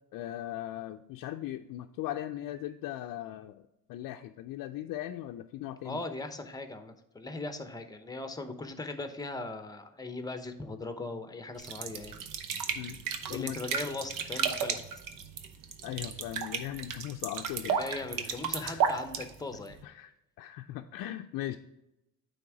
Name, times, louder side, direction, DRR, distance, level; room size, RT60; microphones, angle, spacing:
voice 1, 0.1-3.6 3.9-6.0 12.8-13.0 13.3-13.6 15.8-17.8 18.2-18.3 18.6-18.8 19.8-20.1 20.4-21.6, left 13 dB, 70° left, 4 dB, 0.5 m, -38 dB
voice 2, 5.8-12.2 13.3-14.8 17.7-19.8, left 3 dB, 10° left, 8 dB, 0.8 m, -39 dB
sound 1, 11.6-19.8, right 7 dB, 70° right, 0.9 m, -34 dB
9.2 x 3.5 x 4.7 m, 0.90 s
cardioid pair, 90°, 34 cm